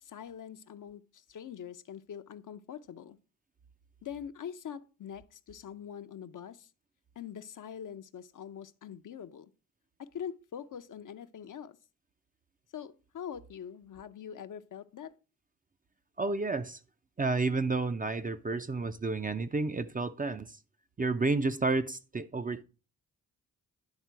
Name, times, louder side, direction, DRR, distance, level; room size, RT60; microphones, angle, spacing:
voice 1, 0.0-3.2 4.0-6.7 7.2-9.5 10.0-11.8 12.7-15.1, left 8 dB, 50° left, 0.6 m, -43 dB
voice 2, 16.2-16.8 17.2-20.6 21.0-22.6, right 3 dB, 20° right, 0.5 m, -31 dB
10.5 x 3.6 x 4.6 m
supercardioid pair, 55°, 40 cm